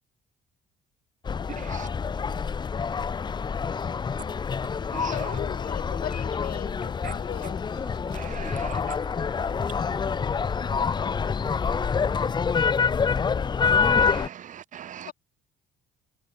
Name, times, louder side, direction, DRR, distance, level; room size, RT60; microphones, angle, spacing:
sound 1, 1.3-14.3, left 6 dB, 25° left, 0.7 m, -27 dB
voice 1, 1.6-1.9 4.9-5.4 7.0-7.1 8.1-8.8 14.0-15.1, right 10 dB, 50° right, 1.2 m, -40 dB
voice 2, 5.1-7.6 15.0-15.1, left 12 dB, 60° left, 3.1 m, -37 dB
sound 2, 5.7-12.4, left 7 dB, 45° left, 6.1 m, -53 dB
voice 3, 7.7-12.8, right 2 dB, 10° right, 5.7 m, -48 dB
cardioid pair, 110°, 17 cm